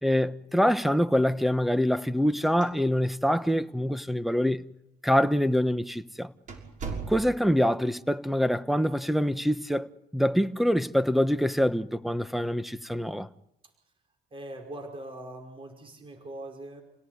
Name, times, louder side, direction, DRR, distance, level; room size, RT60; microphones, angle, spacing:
voice 1, 0.0-4.6 5.0-6.3 7.1-13.3, equal, ahead, 1.1 m, -25 dB
sound 1, 2.6-3.2 3.5-3.6 4.3-4.4 5.2-5.4 5.8-5.9 6.5-7.6, right 5 dB, 50° right, 6.3 m, -38 dB
voice 2, 14.3-16.8, right 1 dB, 30° right, 5.2 m, -41 dB
28.5 x 17.5 x 9.5 m
cardioid pair, 110°, 17 cm